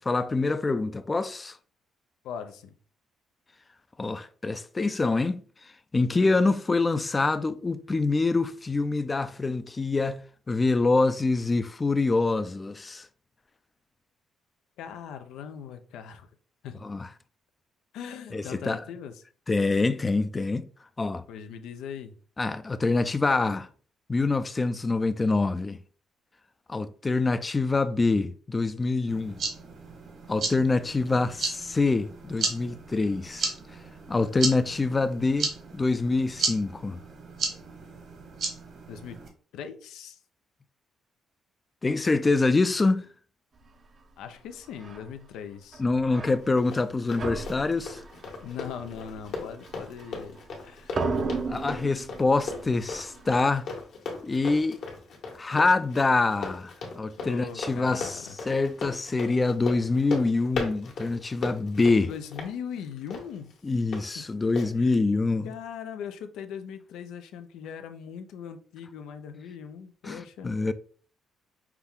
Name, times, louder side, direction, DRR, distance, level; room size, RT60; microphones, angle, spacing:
voice 1, 0.1-1.6 4.0-5.4 5.9-13.1 16.8-17.1 18.3-18.8 19.5-20.7 21.0-21.2 22.4-23.7 24.1-25.8 26.7-29.4 30.3-33.5 34.1-37.0 41.8-43.1 45.8-48.0 51.5-53.7 54.2-54.8 55.3-62.1 63.6-65.5 70.0-70.7, left 3 dB, 25° left, 0.4 m, -25 dB
voice 2, 2.2-2.7 6.1-6.4 14.8-16.3 16.6-16.9 17.9-19.2 21.3-22.1 38.9-39.2 39.5-40.2 44.2-45.8 48.4-51.1 57.2-58.4 62.1-63.5 64.1-64.2 64.8-65.0 65.4-70.5, left 8 dB, 85° left, 0.5 m, -40 dB
sound 1, 29.1-39.3, right 4 dB, 65° right, 1.3 m, -34 dB
sound 2, 44.7-45.1 45.7-46.9 47.2-50.6 50.9-53.5, right 3 dB, 45° right, 0.6 m, -35 dB
Run, 46.2-64.0 64.6-64.7, left 4 dB, 70° left, 1.4 m, -38 dB
5.8 x 2.3 x 3.6 m
cardioid pair, 90°, 0 cm